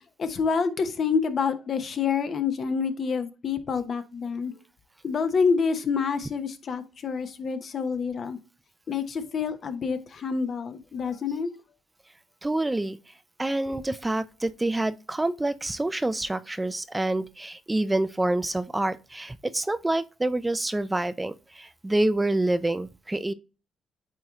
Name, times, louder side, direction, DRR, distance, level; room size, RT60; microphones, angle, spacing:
voice 1, 0.2-4.5 5.0-8.4 8.9-11.5, left 5 dB, 50° left, 0.9 m, -27 dB
voice 2, 12.4-13.0 13.4-23.3, right 2 dB, 15° right, 0.4 m, -27 dB
8.8 x 3.1 x 3.6 m
cardioid pair, 90°, 0 cm